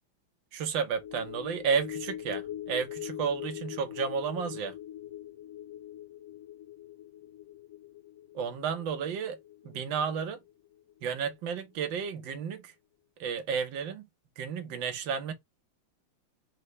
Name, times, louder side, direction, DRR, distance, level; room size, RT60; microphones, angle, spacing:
voice 1, 0.5-4.7 8.3-9.4 9.6-10.4 11.0-12.7 13.2-14.1 14.4-15.3, right 6 dB, 70° right, 1.6 m, -32 dB
sound 1, 0.9-11.5 11.9-12.0, left 12 dB, 90° left, 0.7 m, -43 dB
4.3 x 3.1 x 3.1 m
omnidirectional pair, 2.2 m